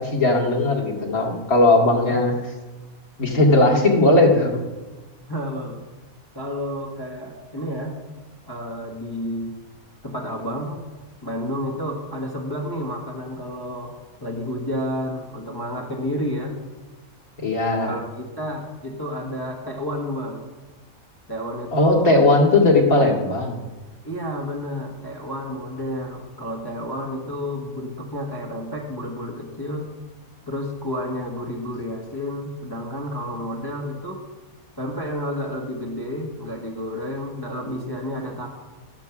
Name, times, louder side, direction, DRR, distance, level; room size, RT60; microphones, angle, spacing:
voice 1, 0.0-2.4 3.2-4.6 17.4-17.9 21.7-23.6, left 2 dB, 80° left, -1 dB, 2.6 m, -18 dB
voice 2, 5.3-5.8 6.3-8.0 8.5-9.5 10.0-10.8 11.2-13.9 14.2-16.6 17.8-20.4 21.3-22.2 24.0-29.9 30.5-34.2 34.8-38.5, equal, 15° left, -1 dB, 1.3 m, -30 dB
15.0 x 7.3 x 6.0 m, 1.2 s
omnidirectional pair, 1.5 m